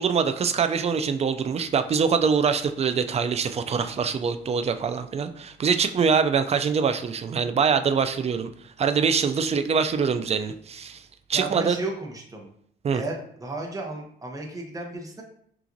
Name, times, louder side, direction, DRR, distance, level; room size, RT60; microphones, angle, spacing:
voice 1, 0.0-8.5 8.8-11.0 11.3-11.8 12.8-13.0, right 6 dB, 30° right, 9 dB, 0.4 m, -24 dB
voice 2, 11.3-12.5 12.9-15.2, right 2 dB, 15° right, 1 dB, 0.9 m, -34 dB
5.8 x 2.4 x 2.7 m, 0.64 s
cardioid pair, 90°, 20 cm